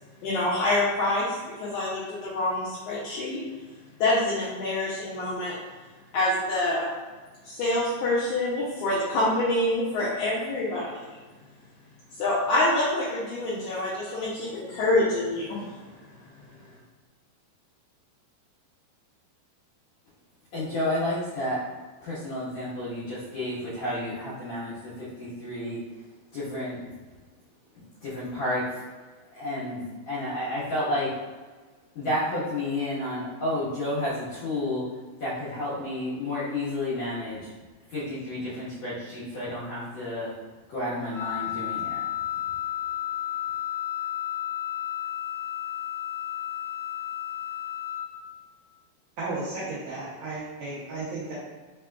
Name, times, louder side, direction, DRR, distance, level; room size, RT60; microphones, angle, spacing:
voice 1, 0.2-3.4 4.0-5.6 6.1-6.9 7.5-10.9 12.2-15.7, left 2 dB, 80° left, -8 dB, 1.8 m, -26 dB
voice 2, 20.5-21.7 22.0-25.8 26.3-26.8 28.0-28.8 29.3-31.2 31.9-34.9 35.2-37.5 37.9-40.3 40.7-42.0, left 1 dB, 60° left, -12 dB, 2.0 m, -31 dB
Wind instrument woodwind instrument, 41.1-48.1, left 12 dB, 70° right, 2.3 m, -32 dB
voice 3, 49.2-51.4, right 2 dB, 90° right, -9 dB, 1.5 m, -34 dB
5.4 x 3.7 x 2.3 m, 1.4 s
omnidirectional pair, 4.5 m